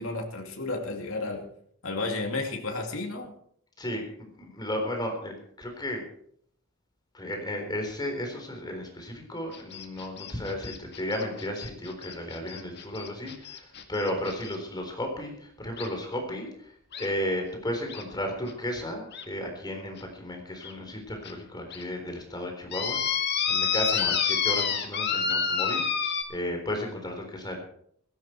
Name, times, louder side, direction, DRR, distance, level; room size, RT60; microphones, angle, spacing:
voice 1, 0.0-1.5 1.8-3.3 23.9-24.1, left 2 dB, 70° left, 2.6 m, -32 dB
voice 2, 3.8-6.0 7.1-16.7 17.0-25.9 26.3-27.6, left 1 dB, 20° left, 3.9 m, -34 dB
sound 1, 9.5-14.6 15.8-15.9 16.9-17.1 17.9-18.0 18.5-18.6 19.1-19.2 20.0-20.1 20.6-20.7 21.2-21.3 21.7-21.8 22.7-26.2, left 7 dB, 55° left, 2.0 m, -29 dB
16.5 x 15.0 x 4.5 m
head